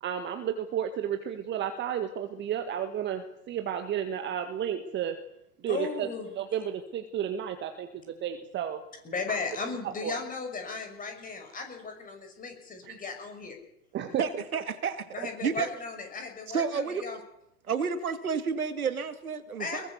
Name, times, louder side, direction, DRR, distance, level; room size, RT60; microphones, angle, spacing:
voice 1, 0.0-5.2 5.6-6.1 6.4-8.8 9.3-9.4 10.0-10.2 12.8-12.9 13.9-14.4, right 9 dB, 25° right, 6 dB, 1.9 m, -32 dB
voice 2, 5.7-6.3 9.0-13.6 15.1-17.2 19.6-19.9, left 4 dB, 20° left, 5 dB, 6.0 m, -36 dB
voice 3, 14.2-15.1 15.4-15.7 16.5-17.0 17.7-19.9, right 6 dB, 75° right, 10 dB, 2.2 m, -30 dB
22.0 x 22.0 x 7.0 m, 0.82 s
figure-of-eight pair, 105°, 43 cm